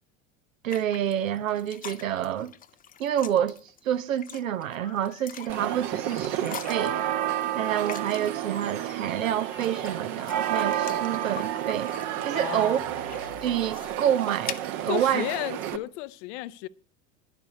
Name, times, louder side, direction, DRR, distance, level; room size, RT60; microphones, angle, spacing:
voice 1, 0.6-2.5 3.0-3.6 3.8-7.0 7.5-11.9 12.2-12.8 13.4-15.3, right 10 dB, 75° right, 0.8 m, -28 dB
sound 1, 0.7-8.6 9.3-15.8, left 9 dB, 20° left, 0.6 m, -44 dB
sound 2, 4.5-7.1 8.0-14.0, left 7 dB, 80° left, 2.2 m, -52 dB
sound 3, 5.5-15.8, right 11 dB, 45° right, 1.0 m, -31 dB
voice 2, 12.3-12.8 14.9-16.7, left 17 dB, 55° left, 0.8 m, -33 dB
11.0 x 6.9 x 6.9 m
figure-of-eight pair, 75°, 41 cm